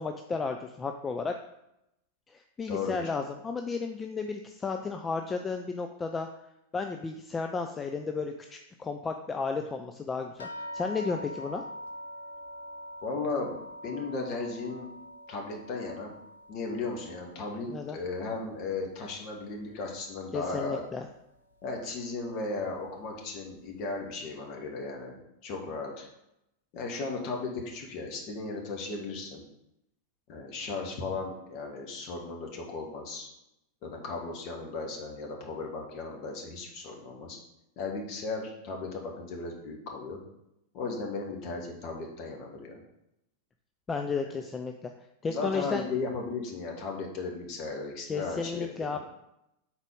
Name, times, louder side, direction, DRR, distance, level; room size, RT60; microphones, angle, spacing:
voice 1, 0.0-1.3 2.3-6.3 6.7-10.5 10.7-11.6 17.7-18.0 20.3-21.1 43.9-44.9 45.2-45.8 48.1-49.0, left 4 dB, 20° left, 5 dB, 0.4 m, -33 dB
voice 2, 2.7-3.1 13.0-14.9 15.3-16.1 16.5-20.8 21.6-25.2 25.4-26.1 26.7-29.4 30.3-33.3 33.8-37.4 37.8-40.2 40.7-42.8 44.2-44.3 45.2-49.0, left 3 dB, 40° left, 1 dB, 1.3 m, -36 dB
sound 1, 10.4-19.2 19.5-20.4 21.2-21.3 21.7-21.8, equal, 75° left, 0.6 m, -45 dB
4.5 x 4.0 x 5.2 m, 0.84 s
figure-of-eight pair, 90°, 0 cm